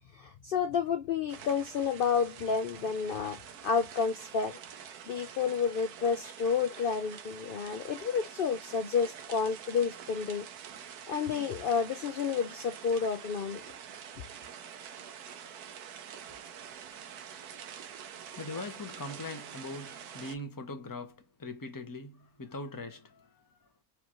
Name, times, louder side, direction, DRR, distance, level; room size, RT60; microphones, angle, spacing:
voice 1, 0.1-3.4 3.6-10.5 11.1-13.6, left 6 dB, 70° left, 0.5 m, -30 dB
sound 1, 1.3-20.4, right 8 dB, 90° right, 1.2 m, -46 dB
voice 2, 18.3-23.4, left 2 dB, 20° left, 0.6 m, -41 dB
4.7 x 2.5 x 3.0 m
omnidirectional pair, 1.6 m